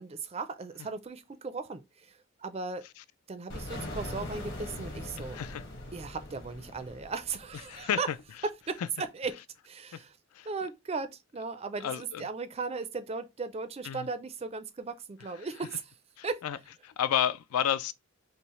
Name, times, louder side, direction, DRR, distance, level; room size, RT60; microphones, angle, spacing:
voice 1, 0.0-2.9 3.3-5.4 5.9-8.1 8.4-9.3 9.6-10.2 10.4-15.9 16.2-16.4, right 4 dB, 25° right, 0.4 m, -37 dB
sound 1, 3.5-8.2, left 1 dB, 50° left, 1.3 m, -41 dB
voice 2, 5.2-5.6 7.7-8.2 9.9-10.0 10.3-10.5 11.8-12.2 13.8-14.1 16.2-16.6 16.8-17.9, left 9 dB, 80° left, 0.3 m, -31 dB
5.3 x 2.0 x 3.0 m
head